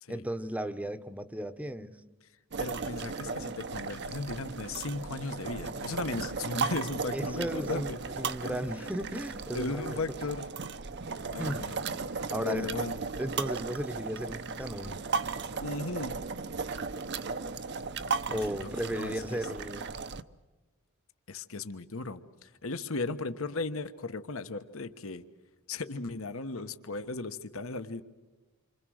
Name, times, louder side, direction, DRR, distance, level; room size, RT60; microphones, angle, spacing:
voice 1, 0.1-1.9 7.1-10.0 11.4-11.6 12.3-12.7 13.2-15.0 18.3-19.9, right 1 dB, 5° right, 12 dB, 0.9 m, -35 dB
sound 1, 2.5-20.2, right 4 dB, 50° right, 0.8 m, -36 dB
voice 2, 2.6-8.0 8.4-8.6 9.5-10.5 11.3-11.8 12.4-12.9 15.6-16.2 18.3-18.6 18.9-19.4 21.3-25.2 25.7-28.0, left 3 dB, 65° left, 10 dB, 1.2 m, -36 dB
28.5 x 25.5 x 6.4 m, 1.2 s
head